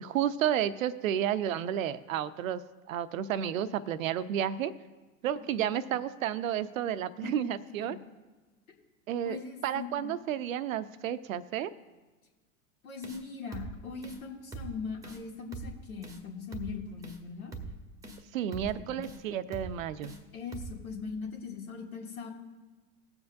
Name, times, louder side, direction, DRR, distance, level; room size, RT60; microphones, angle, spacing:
voice 1, 0.0-4.7 5.2-8.0 9.1-11.7 18.3-20.2, right 10 dB, 70° right, 14 dB, 0.6 m, -31 dB
voice 2, 9.3-10.1 12.8-17.6 18.9-19.1 20.3-22.3, left 5 dB, 75° left, 1 dB, 2.0 m, -40 dB
sound 1, 13.0-13.2 13.5-13.7 14.0-14.2 14.5-14.7 15.0-15.2 15.5-15.7 16.0-16.2 16.5-16.7 17.0-17.2 17.5-17.7 18.0-18.2 18.5-18.7 19.0-19.2 19.5-19.7 20.0-20.2 20.5-20.7, right 4 dB, 10° right, 1.0 m, -41 dB
19.5 x 7.1 x 2.6 m, 1.3 s
hypercardioid pair, 95°, 43 cm